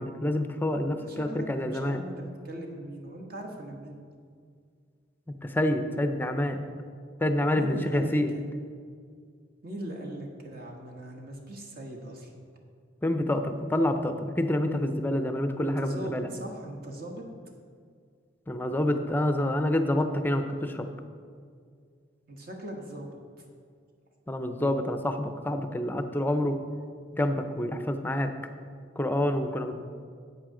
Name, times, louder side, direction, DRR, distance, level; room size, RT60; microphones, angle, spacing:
voice 1, 0.0-2.0 5.3-6.6 7.2-8.3 13.0-16.3 18.5-20.9 24.3-26.6 27.1-28.3 29.0-29.7, left 1 dB, 10° left, 7 dB, 0.5 m, -27 dB
voice 2, 0.9-4.0 7.5-8.4 9.6-12.3 15.6-17.2 22.3-23.4, right 1 dB, 50° right, 0 dB, 1.3 m, -40 dB
11.0 x 8.1 x 3.8 m, 2.1 s
head